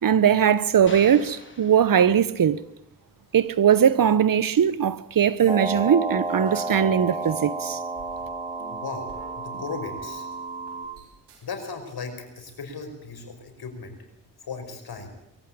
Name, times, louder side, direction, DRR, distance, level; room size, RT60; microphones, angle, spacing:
voice 1, 0.0-2.6 3.3-7.8, right 8 dB, 55° right, 1.1 m, -20 dB
sound 1, 0.9-2.6, left 3 dB, 30° left, 3.8 m, -45 dB
sound 2, 4.8-5.1 5.4-7.6 8.0-12.6, right 5 dB, 85° right, 3.7 m, -51 dB
sound 3, 5.5-10.9, right 3 dB, 10° right, 4.6 m, -31 dB
voice 2, 8.7-9.1 9.4-10.3 11.4-13.9 14.4-15.1, left 4 dB, 65° left, 5.4 m, -36 dB
23.0 x 15.0 x 8.7 m
supercardioid pair, 45°, 40 cm